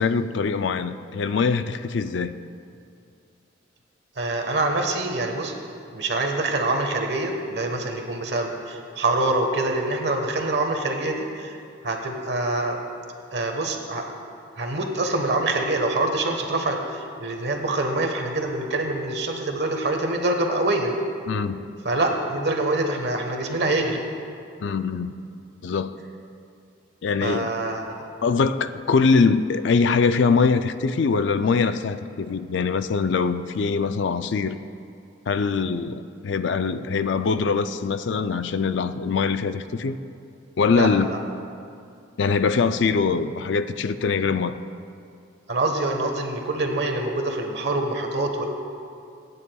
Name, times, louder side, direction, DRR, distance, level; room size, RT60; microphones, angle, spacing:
voice 1, 0.0-2.3 21.3-21.6 24.6-25.1 25.6-26.0 27.0-27.5 28.2-34.6 35.3-40.0 40.6-41.1 42.2-44.5, left 5 dB, 65° left, 11 dB, 0.4 m, -23 dB
voice 2, 4.2-5.5 5.9-11.6 11.8-12.8 13.3-14.1 14.6-20.9 21.8-24.0 27.2-28.1 40.7-41.2 45.5-48.4, right 2 dB, 55° right, 3 dB, 1.3 m, -25 dB
24.0 x 9.7 x 2.3 m, 2.4 s
head